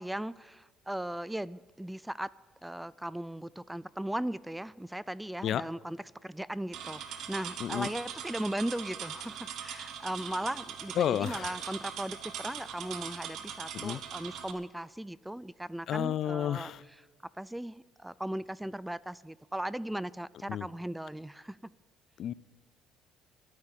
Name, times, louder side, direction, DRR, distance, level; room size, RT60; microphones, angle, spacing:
voice 1, 0.0-2.3 2.6-17.1 17.4-21.7, right 1 dB, 5° right, 21 dB, 0.3 m, -38 dB
sound 1, 6.7-14.5, right 8 dB, 70° right, 1.3 m, -41 dB
voice 2, 11.0-11.5 13.7-14.0 15.9-16.8 20.5-20.6 22.2-22.3, left 10 dB, 60° left, 20 dB, 0.4 m, -31 dB
12.5 x 10.5 x 7.3 m, 1.4 s
supercardioid pair, 75°, 0 cm